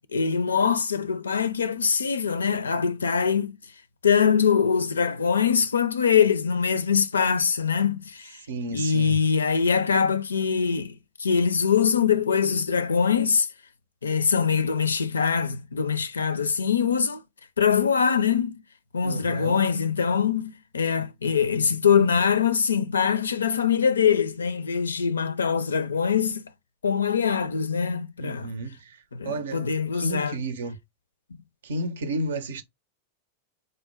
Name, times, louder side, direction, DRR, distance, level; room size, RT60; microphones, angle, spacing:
voice 1, 0.1-3.5 4.0-8.4 8.7-10.9 11.2-13.5 14.0-17.2 17.6-18.6 18.9-26.5 26.8-28.5 29.1-30.4, left 6 dB, 75° left, 0.4 m, -23 dB
voice 2, 8.5-9.2 19.0-19.6 28.2-29.0 29.2-29.7 29.9-30.8 31.6-32.6, right 2 dB, 65° right, 0.5 m, -31 dB
3.7 x 2.1 x 4.1 m
figure-of-eight pair, 90°, 0 cm